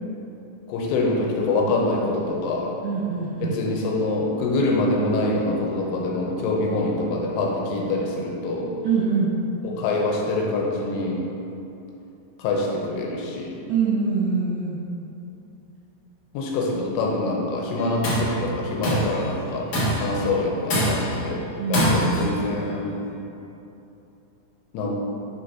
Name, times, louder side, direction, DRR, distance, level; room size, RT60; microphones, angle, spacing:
voice 1, 0.7-2.7 3.4-8.7 9.6-11.2 12.4-13.6 16.3-19.7 20.0-21.4 21.7-22.9 24.7-25.0, left 2 dB, 85° left, -1 dB, 3.1 m, -25 dB
voice 2, 2.8-3.6 6.7-6.8 8.8-9.4 13.7-14.9 21.6-22.1, right 5 dB, 75° right, -8 dB, 2.3 m, -24 dB
Tools, 17.8-18.3 18.8-19.2 19.7-20.2 20.7-21.2 21.7-22.3, equal, 70° left, 1.6 m, -23 dB
9.8 x 5.2 x 2.8 m, 2.9 s
omnidirectional pair, 5.8 m